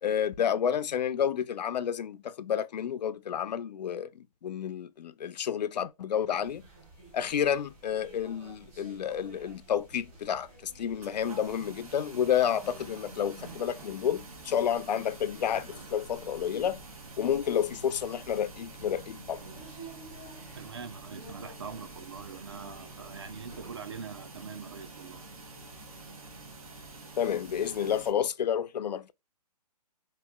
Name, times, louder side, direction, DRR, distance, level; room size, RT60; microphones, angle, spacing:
voice 1, 0.0-6.6 7.1-16.8 17.2-19.4 27.2-29.1, left 9 dB, 90° left, 0.4 m, -30 dB
sound 1, 6.4-23.7, right 2 dB, 20° right, 1.3 m, -52 dB
sound 2, 11.0-28.1, right 3 dB, 60° right, 1.0 m, -47 dB
voice 2, 20.6-25.2, right 5 dB, 40° right, 0.4 m, -43 dB
2.9 x 2.9 x 2.3 m
hypercardioid pair, 175°, 21 cm